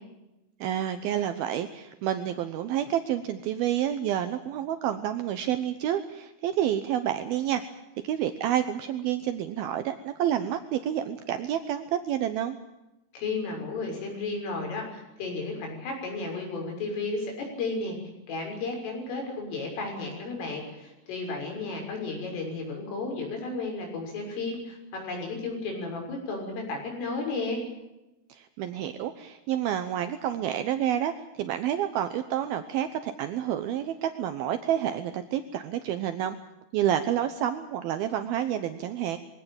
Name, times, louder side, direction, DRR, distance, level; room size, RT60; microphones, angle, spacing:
voice 1, 0.6-7.6 8.0-12.6 28.3-36.4 36.7-39.2, right 10 dB, 80° right, 9 dB, 2.1 m, -29 dB
voice 2, 13.1-18.0 18.3-27.6, left 3 dB, 75° left, 2 dB, 9.0 m, -33 dB
23.0 x 17.5 x 8.9 m, 0.95 s
omnidirectional pair, 5.7 m